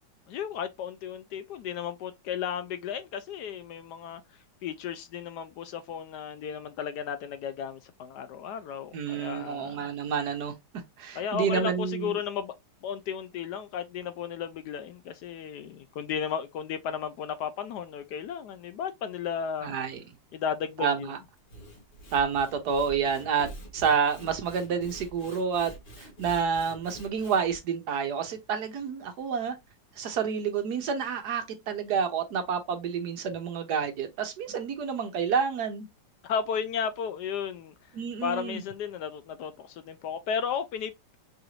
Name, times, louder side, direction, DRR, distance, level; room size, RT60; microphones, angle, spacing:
voice 1, 0.3-4.2 4.6-9.9 11.1-12.5 12.8-19.7 20.3-21.1 36.2-37.7 38.2-41.2, left 7 dB, 70° left, 1.1 m, -34 dB
voice 2, 8.9-10.5 11.0-12.2 19.6-20.0 20.8-21.2 22.1-23.5 23.7-25.7 26.0-29.6 30.0-35.9 37.9-38.6, right 6 dB, 65° right, 1.2 m, -29 dB
Sawing / Wood, 21.4-27.6, right 1 dB, 35° left, 1.0 m, -46 dB
4.8 x 2.5 x 3.0 m
omnidirectional pair, 2.0 m